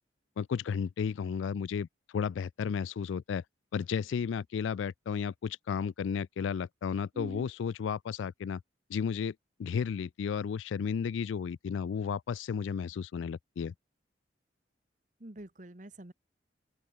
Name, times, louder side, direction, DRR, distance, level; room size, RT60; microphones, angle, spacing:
voice 1, 0.4-3.4 3.7-8.6 8.9-9.3 9.6-13.7, left 6 dB, 80° left, 0.3 m, -33 dB
voice 2, 7.1-7.5 15.2-16.1, right 1 dB, 40° right, 1.3 m, -44 dB
open air
head